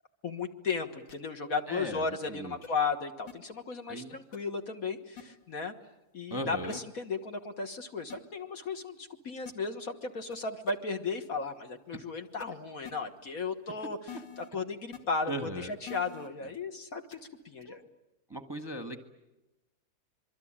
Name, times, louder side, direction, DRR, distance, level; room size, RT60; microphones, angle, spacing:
voice 1, 0.2-5.7 6.1-14.0 14.4-17.2 17.4-17.8, left 4 dB, 50° left, 6 dB, 1.8 m, -35 dB
sound 1, 1.1-1.3 2.6-2.7 3.3-3.4 4.3-4.4 5.2-5.3 6.7-6.8 8.1-8.2 9.5-9.6 10.3-10.4 10.7-10.8 12.4-12.5 12.8-12.9 14.1-14.5 14.9-15.0 15.9-16.3 17.1-17.3, left 7 dB, 70° left, 3.0 m, -44 dB
voice 2, 1.7-2.6 3.9-4.2 6.3-6.8 15.2-15.7 17.6-17.8 18.3-19.0, equal, 15° right, 5 dB, 1.2 m, -38 dB
26.0 x 23.0 x 8.8 m, 1.0 s
omnidirectional pair, 2.0 m